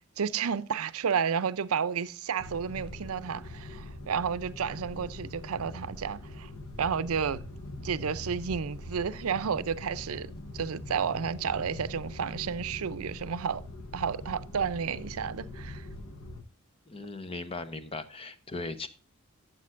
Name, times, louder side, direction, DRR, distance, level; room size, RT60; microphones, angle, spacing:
voice 1, 0.2-6.5 6.8-7.4 7.8-10.3 10.5-13.6 13.9-15.9, right 6 dB, 80° right, 0.5 m, -31 dB
sound 1, 2.4-16.4, left 1 dB, 75° left, 1.0 m, -43 dB
voice 2, 16.9-18.9, left 3 dB, 25° left, 0.8 m, -38 dB
12.0 x 7.8 x 2.5 m
head